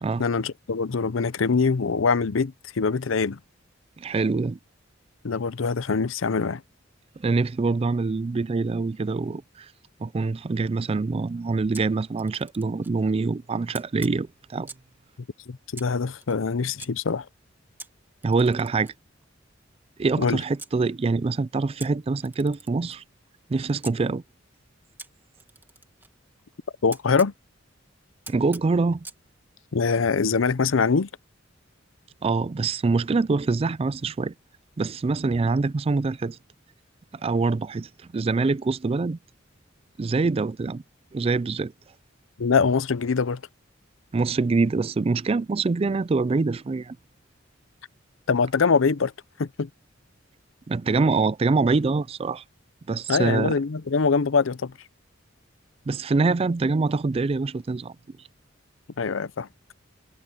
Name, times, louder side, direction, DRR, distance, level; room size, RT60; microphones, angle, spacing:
voice 1, 0.2-3.4 5.2-6.6 15.5-17.3 20.2-20.4 26.8-27.3 29.7-31.1 42.4-43.4 48.3-49.1 49.4-49.7 53.1-54.7 59.0-59.5, left 5 dB, 85° left, 0.6 m, -23 dB
voice 2, 4.0-4.6 7.2-9.7 10.0-14.7 18.2-18.9 20.0-23.0 23.5-24.2 28.3-29.1 32.2-34.3 34.8-36.4 37.1-39.2 40.0-40.8 41.1-41.7 44.1-47.0 50.7-52.4 52.9-53.5 55.9-57.9, right 3 dB, 30° right, 0.4 m, -25 dB
Camera, 11.7-13.0 13.7-15.0 15.7-16.9 17.8-20.8 21.8-24.0 25.0-27.3 28.2-29.2, right 3 dB, 10° right, 2.1 m, -46 dB
head